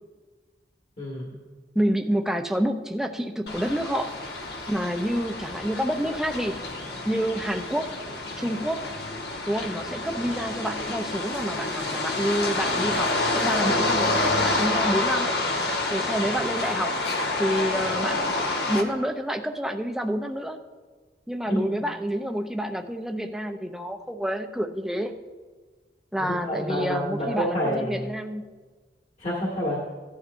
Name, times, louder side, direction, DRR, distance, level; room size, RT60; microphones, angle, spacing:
voice 1, 1.0-1.4 21.5-21.8 26.3-28.1 29.2-29.8, equal, 45° left, -5 dB, 1.9 m, -28 dB
voice 2, 1.7-4.1 4.7-6.6 7.1-7.9 8.4-8.8 9.5-15.3 15.9-16.9 17.4-18.3 18.7-20.6 21.3-25.1 26.1-28.4, equal, 5° right, 5 dB, 0.5 m, -28 dB
sound 1, 3.5-18.8, left 2 dB, 65° left, 1.2 m, -28 dB
16.0 x 11.5 x 2.6 m, 1.4 s
head